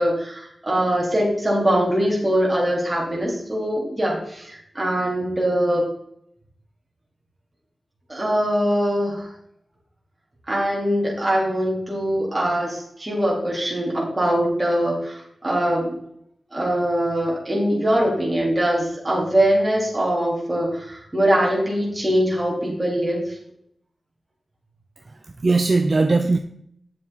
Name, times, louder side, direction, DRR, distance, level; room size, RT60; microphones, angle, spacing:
voice 1, 0.0-5.8 8.1-9.2 10.5-15.9 16.5-23.2, equal, 20° right, -4 dB, 3.7 m, -22 dB
voice 2, 25.0-26.4, right 3 dB, 40° right, 7 dB, 0.6 m, -20 dB
9.8 x 7.3 x 4.1 m, 0.69 s
wide cardioid pair, 110°, 0 cm